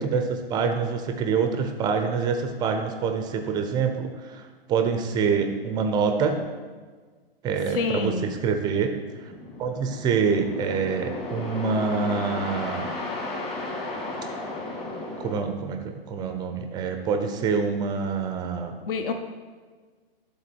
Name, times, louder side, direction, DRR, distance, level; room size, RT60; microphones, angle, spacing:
voice 1, 0.0-4.4 4.7-6.4 7.4-8.9 9.6-12.9 15.2-15.8 16.1-18.8, right 5 dB, 15° right, 6 dB, 0.4 m, -26 dB
voice 2, 7.7-8.3 18.9-19.1, left 4 dB, 60° left, 6 dB, 0.9 m, -27 dB
sound 1, 9.2-15.4, left 2 dB, 20° left, 1.6 m, -34 dB
11.5 x 3.9 x 4.4 m, 1.5 s
hypercardioid pair, 130°, 31 cm